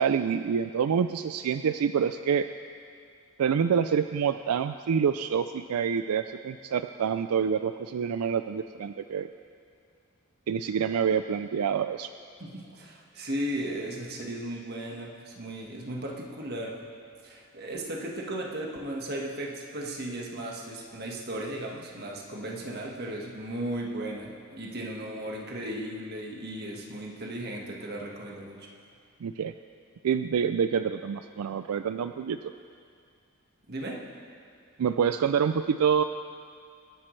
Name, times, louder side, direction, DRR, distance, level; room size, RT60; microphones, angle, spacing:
voice 1, 0.0-2.5 3.4-9.3 10.5-12.1 29.2-29.5 30.0-32.5 34.8-36.0, right 7 dB, 85° right, 10 dB, 0.4 m, -27 dB
voice 2, 12.4-16.8 17.2-28.7 33.7-34.0, right 1 dB, 45° right, -1 dB, 1.6 m, -36 dB
25.0 x 10.5 x 3.2 m, 2.3 s
head